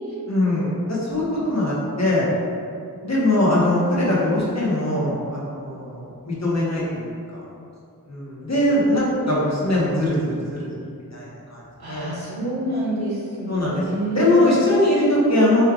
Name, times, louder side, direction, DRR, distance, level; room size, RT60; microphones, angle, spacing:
voice 1, 0.3-2.2 3.0-7.4 8.1-10.7 11.1-11.6 11.9-12.1 13.5-15.7, left 1 dB, 45° left, -7 dB, 1.1 m, -21 dB
voice 2, 11.8-14.5, right 1 dB, 80° right, -8 dB, 1.3 m, -27 dB
4.6 x 3.2 x 2.4 m, 2.3 s
wide cardioid pair, 40°, 37 cm